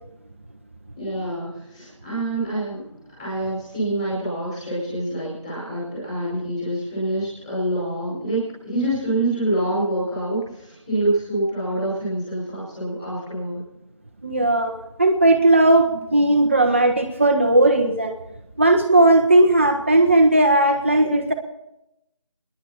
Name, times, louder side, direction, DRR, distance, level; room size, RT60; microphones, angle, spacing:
voice 1, 1.0-2.9 3.2-13.6, right 1 dB, 10° left, -6 dB, 5.0 m, -26 dB
voice 2, 14.2-14.7 15.0-18.1 18.6-21.3, right 1 dB, 25° right, 4 dB, 0.7 m, -16 dB
29.0 x 10.5 x 4.3 m, 0.88 s
figure-of-eight pair, 165°, 16 cm